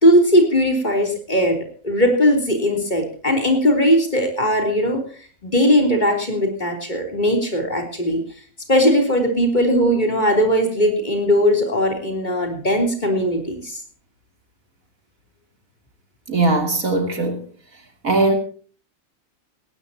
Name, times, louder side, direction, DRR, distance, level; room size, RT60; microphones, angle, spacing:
voice 1, 0.0-1.6 1.8-5.0 5.4-8.2 8.7-13.8, equal, 35° left, 4 dB, 3.6 m, -18 dB
voice 2, 16.3-17.4 18.0-18.4, right 2 dB, 85° right, 4 dB, 3.4 m, -19 dB
18.5 x 18.0 x 2.9 m, 0.42 s
omnidirectional pair, 1.4 m